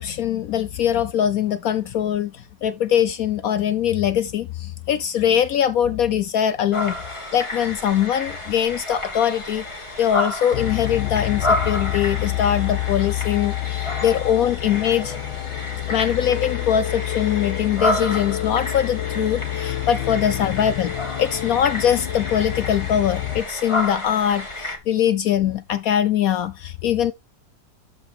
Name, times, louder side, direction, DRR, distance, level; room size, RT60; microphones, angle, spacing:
voice 1, 0.0-7.0 7.3-9.7 10.0-15.1 15.9-27.1, left 9 dB, 70° left, 0.9 m, -22 dB
sound 1, 6.7-24.8, left 2 dB, 15° left, 1.9 m, -30 dB
sound 2, 10.5-23.4, left 16 dB, 85° left, 1.5 m, -28 dB
12.5 x 4.8 x 3.5 m
omnidirectional pair, 2.0 m